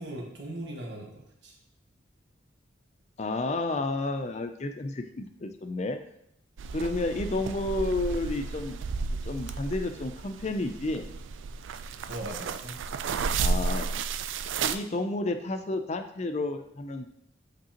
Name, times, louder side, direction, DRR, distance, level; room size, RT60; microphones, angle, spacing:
voice 1, 0.0-1.5 12.1-12.8, right 1 dB, 60° right, -1 dB, 1.5 m, -39 dB
voice 2, 3.2-6.0 6.7-8.8 9.2-11.1 13.4-13.9 14.6-17.1, left 2 dB, 35° left, 7 dB, 0.4 m, -31 dB
sound 1, 6.6-14.8, right 4 dB, 80° right, 0.4 m, -32 dB
8.3 x 5.2 x 2.9 m, 0.75 s
head